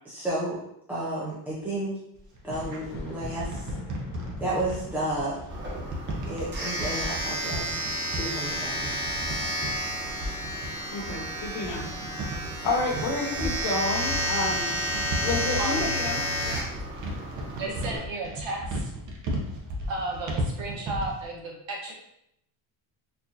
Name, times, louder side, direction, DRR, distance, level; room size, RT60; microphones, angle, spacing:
voice 1, 0.1-0.6 0.9-2.0 2.4-3.6 4.4-5.4 6.3-7.8 8.1-9.4, right 1 dB, 5° right, -9 dB, 0.4 m, -32 dB
sound 1, 2.1-21.3, right 1 dB, 40° right, 0.8 m, -35 dB
Thunder, 2.3-11.6 12.0-13.2 14.8-14.9 15.7-15.8, left 2 dB, 25° left, 1.2 m, -45 dB
Domestic sounds home sounds, 5.5-18.0, equal, 25° right, 1.2 m, -31 dB
voice 2, 10.9-11.9 12.6-14.8 15.2-16.6, left 3 dB, 65° left, -1 dB, 1.1 m, -30 dB
voice 3, 15.6-15.9 17.6-18.9 19.9-21.9, right 2 dB, 65° right, -3 dB, 1.4 m, -33 dB
4.3 x 2.5 x 2.8 m, 0.78 s
cardioid pair, 145°, 48 cm